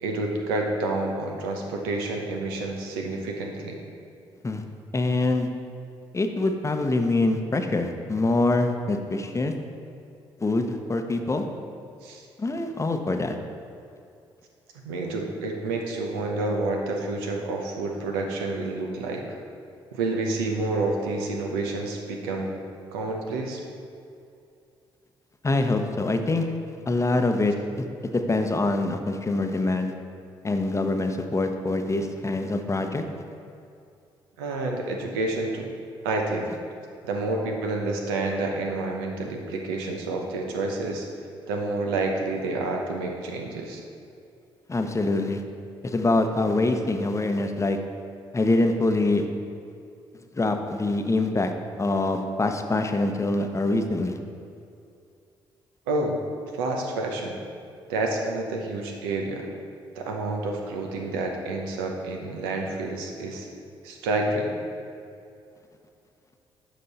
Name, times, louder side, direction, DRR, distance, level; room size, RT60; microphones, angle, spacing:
voice 1, 0.0-3.8 12.0-12.2 14.7-19.4 19.9-22.5 22.9-23.6 34.4-35.7 36.0-36.5 37.0-41.1 41.5-43.8 55.9-56.2 56.5-57.4 57.9-59.5 59.9-63.5 63.8-64.5, right 2 dB, 90° right, 1 dB, 0.8 m, -29 dB
voice 2, 4.9-5.5 6.1-9.5 10.4-11.5 12.4-13.4 25.4-26.5 26.9-27.9 28.1-29.9 30.4-33.0 44.7-45.4 45.8-47.8 48.3-49.3 50.3-51.5 51.8-54.2, left 2 dB, 25° left, 6 dB, 0.7 m, -24 dB
7.8 x 5.0 x 4.1 m, 2.5 s
hypercardioid pair, 50°, 12 cm